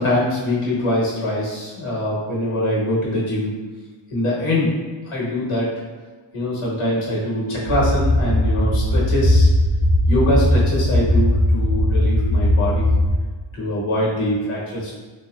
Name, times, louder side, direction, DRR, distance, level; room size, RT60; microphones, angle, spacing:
voice 1, 0.0-3.5 4.1-5.8 6.3-9.5 10.1-12.9 13.5-14.9, left 1 dB, 80° left, -5 dB, 1.3 m, -23 dB
sound 1, 7.7-13.2, left 1 dB, 50° right, 0.5 m, -18 dB
3.0 x 3.0 x 2.3 m, 1.4 s
cardioid pair, 95°, 49 cm